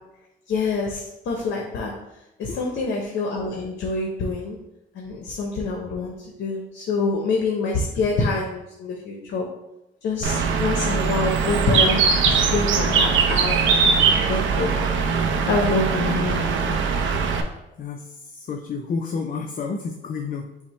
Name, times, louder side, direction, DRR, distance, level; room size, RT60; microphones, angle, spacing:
voice 1, 0.5-1.9 2.4-4.6 4.9-6.1 6.4-9.5 10.0-13.6 14.1-14.9 15.5-16.4 16.6-16.8, left 3 dB, 70° left, 0 dB, 0.8 m, -26 dB
Bird, 10.2-17.4, right 5 dB, 75° right, 0.5 m, -21 dB
voice 2, 17.8-20.6, left 5 dB, 45° left, 3 dB, 0.4 m, -31 dB
5.7 x 2.1 x 4.2 m, 0.92 s
cardioid pair, 90°, 20 cm